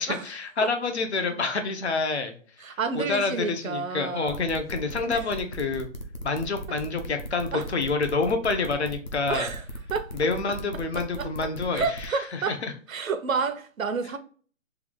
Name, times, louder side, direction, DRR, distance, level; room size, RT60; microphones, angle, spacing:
voice 1, 0.0-2.3 2.9-5.9 6.2-9.5 10.2-11.8 12.3-12.7, left 4 dB, 55° left, 0.8 m, -27 dB
voice 2, 2.6-4.5 5.0-5.2 7.5-7.7 9.3-9.6 9.9-10.1 10.9-11.3 11.7-12.6 12.9-14.2, right 5 dB, 85° right, 0.7 m, -30 dB
sound 1, 4.3-12.1, equal, 35° left, 0.5 m, -37 dB
3.4 x 2.4 x 3.5 m
hypercardioid pair, 160°, 39 cm